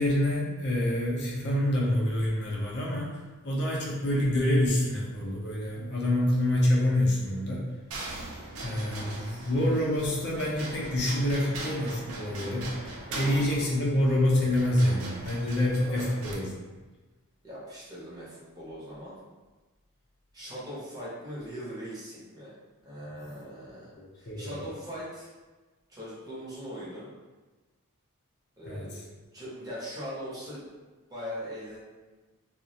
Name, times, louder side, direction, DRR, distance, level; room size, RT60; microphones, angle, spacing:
voice 1, 0.0-7.7 8.6-12.7 13.1-16.5 24.0-24.6 28.7-28.9, left 1 dB, 50° left, -4 dB, 0.5 m, -27 dB
sound 1, 7.9-16.4, right 2 dB, 65° right, 0.4 m, -40 dB
voice 2, 17.4-19.2 20.3-22.5 22.8-25.3 25.9-27.1 28.6-29.0 29.3-30.6 31.1-31.8, equal, 15° right, -8 dB, 0.7 m, -40 dB
2.3 x 2.0 x 2.7 m, 1.2 s
head